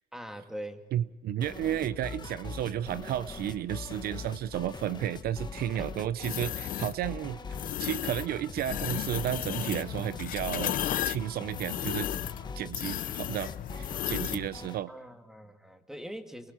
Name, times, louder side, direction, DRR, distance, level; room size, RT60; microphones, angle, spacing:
voice 1, 0.1-0.9 5.7-5.9 7.5-7.6 14.9-16.5, equal, 5° right, 6 dB, 2.3 m, -42 dB
voice 2, 0.9-7.4 7.8-10.8 11.0-12.1 12.6-14.9, right 11 dB, 65° right, 16 dB, 0.6 m, -32 dB
sound 1, 1.4-14.8, left 4 dB, 25° left, 1.3 m, -42 dB
sound 2, 6.2-7.0 7.5-8.3 8.6-14.5, left 12 dB, 55° left, 0.6 m, -34 dB
28.5 x 24.0 x 4.4 m, 1.1 s
cardioid pair, 110°, 17 cm